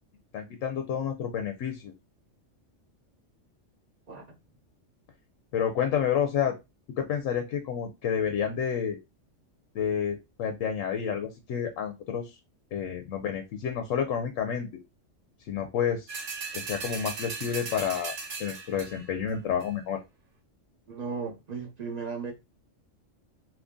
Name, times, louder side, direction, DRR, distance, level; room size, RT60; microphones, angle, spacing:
voice 1, 0.3-1.9 5.5-6.5 7.0-9.0 9.7-12.4 12.7-14.7 15.5-16.1 16.5-18.1 18.4-20.0, left 8 dB, 90° left, 1.0 m, -29 dB
sound 1, 16.1-19.1 19.6-19.7, right 4 dB, 75° right, 1.3 m, -37 dB
voice 2, 20.9-22.3, right 5 dB, 40° right, 0.7 m, -35 dB
2.7 x 2.6 x 3.6 m
omnidirectional pair, 1.3 m